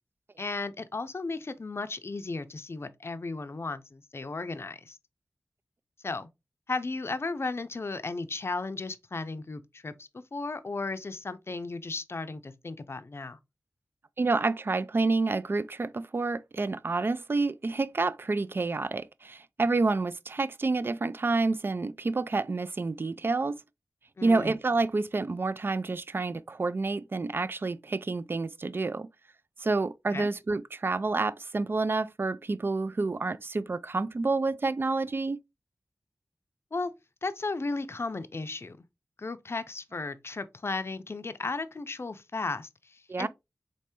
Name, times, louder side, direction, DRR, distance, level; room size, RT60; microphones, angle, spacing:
voice 1, 0.4-5.0 6.0-6.3 6.7-13.4 24.2-24.6 30.1-30.3 36.7-36.9 37.2-38.8 39.2-43.3, left 3 dB, 45° left, 0.5 m, -35 dB
voice 2, 14.2-23.6 24.2-29.1 29.6-35.4 43.1-43.3, right 3 dB, 40° right, 0.3 m, -28 dB
4.1 x 3.2 x 3.0 m
cardioid pair, 45°, 6 cm